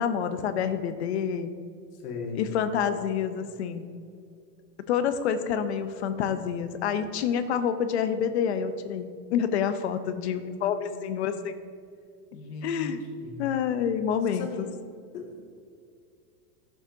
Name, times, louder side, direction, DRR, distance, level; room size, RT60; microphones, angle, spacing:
voice 1, 0.0-1.5 2.4-3.8 4.9-11.6 12.6-13.0 13.4-14.7, left 8 dB, 45° left, 10 dB, 0.5 m, -28 dB
voice 2, 1.9-2.6 10.0-11.3 12.3-12.9 13.2-13.5 14.2-14.7 15.1-15.5, left 4 dB, 65° left, 0 dB, 1.8 m, -39 dB
13.5 x 6.9 x 2.6 m, 2.3 s
supercardioid pair, 175°, 50 cm